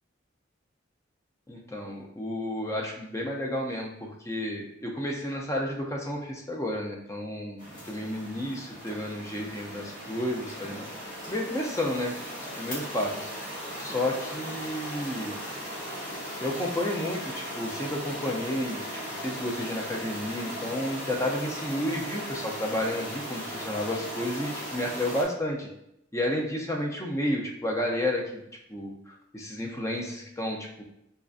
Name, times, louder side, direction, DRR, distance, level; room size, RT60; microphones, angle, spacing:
voice 1, 1.5-10.9 11.3-12.1 12.6-13.3 13.8-15.4 16.4-18.9 19.2-25.7 26.1-28.4 28.7-30.8, left 1 dB, 15° left, 0 dB, 0.4 m, -31 dB
sound 1, 7.6-25.2, equal, 40° left, 1.2 m, -38 dB
4.2 x 2.5 x 2.4 m, 0.79 s
head